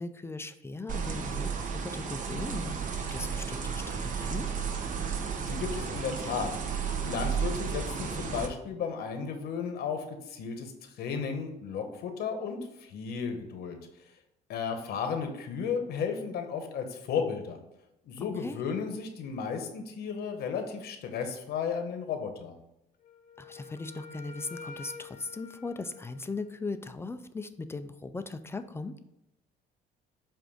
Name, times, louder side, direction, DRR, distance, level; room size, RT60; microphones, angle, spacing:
voice 1, 0.0-2.8 3.1-4.5 18.2-18.6 23.4-29.0, left 3 dB, 15° left, 10 dB, 0.4 m, -38 dB
sound 1, 0.9-8.5, right 6 dB, 50° right, 0.8 m, -33 dB
voice 2, 5.4-6.5 7.0-13.8 14.5-17.6 18.0-22.6, left 6 dB, 70° left, 6 dB, 1.0 m, -34 dB
Wind instrument woodwind instrument, 23.0-26.9, left 4 dB, 55° left, 0.6 m, -48 dB
7.6 x 2.6 x 5.0 m, 0.85 s
cardioid pair, 110°, 17 cm